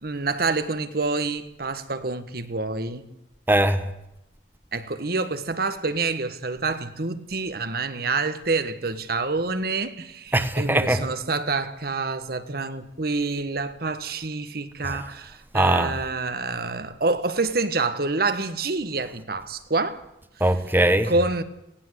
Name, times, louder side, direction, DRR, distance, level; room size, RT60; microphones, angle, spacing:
voice 1, 0.0-3.1 4.7-20.0 21.0-21.4, right 3 dB, 55° right, 1.5 m, -27 dB
voice 2, 3.5-3.8 10.3-11.0 14.8-15.0 15.5-15.9 20.4-21.1, right 1 dB, 10° right, 1.2 m, -21 dB
19.0 x 17.0 x 8.2 m
head